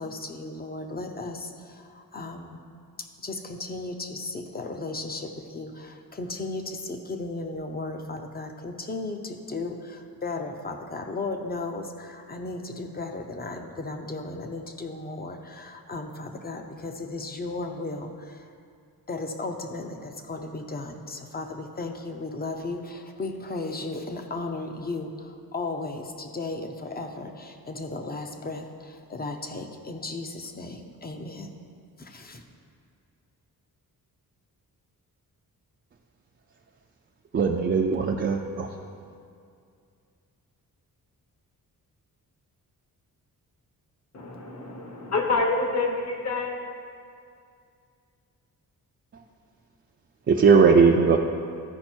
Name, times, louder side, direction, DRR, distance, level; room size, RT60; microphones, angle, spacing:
voice 1, 0.0-2.6 3.2-18.4 19.1-31.5 32.0-32.4, left 2 dB, 25° left, 5 dB, 0.7 m, -35 dB
voice 2, 37.3-38.8 49.1-49.2 50.3-51.2, right 5 dB, 35° right, 0 dB, 0.5 m, -19 dB
voice 3, 44.1-46.6, left 3 dB, 45° left, 2 dB, 1.3 m, -27 dB
13.5 x 5.1 x 4.5 m, 2.3 s
wide cardioid pair, 140°, 36 cm